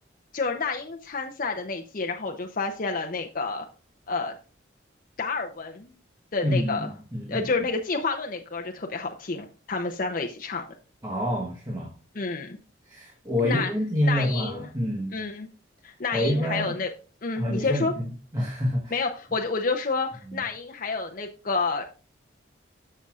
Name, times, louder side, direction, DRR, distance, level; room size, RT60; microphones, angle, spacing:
voice 1, 0.3-3.7 4.1-4.3 5.2-5.9 6.3-6.9 7.3-10.6 12.2-12.6 13.4-13.7 14.0-14.7 15.1-15.5 15.8-16.9 17.2-17.9 18.9-21.8, left 4 dB, 45° left, 3 dB, 0.6 m, -29 dB
voice 2, 6.4-7.5 11.0-11.9 12.8-15.2 16.1-16.8 17.4-19.0 20.2-20.4, equal, 20° right, -2 dB, 1.3 m, -27 dB
14.0 x 5.5 x 2.4 m, 0.36 s
head